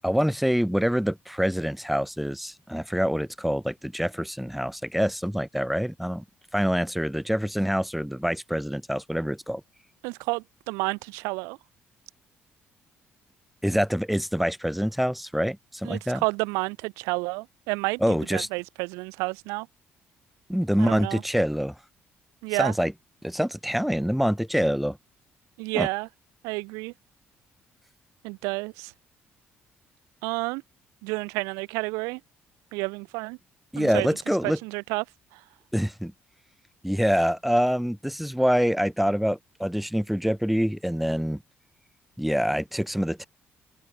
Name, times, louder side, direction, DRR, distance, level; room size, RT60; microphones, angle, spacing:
voice 1, 0.0-6.2 6.5-9.6 13.6-16.2 18.0-18.5 20.5-21.7 22.6-22.9 23.2-25.0 25.7-25.9 33.7-34.6 35.7-36.1 36.8-41.4 42.2-43.3, equal, ahead, 0.5 m, -25 dB
voice 2, 10.0-11.6 15.8-18.0 18.3-19.7 20.8-21.2 22.4-22.7 25.6-26.1 26.4-26.9 28.2-28.9 30.2-30.6 31.0-32.2 32.7-33.4 33.8-34.1 34.4-35.0 35.3-35.4, right 28 dB, 90° right, 1.0 m, -30 dB
open air
supercardioid pair, 60°, 5 cm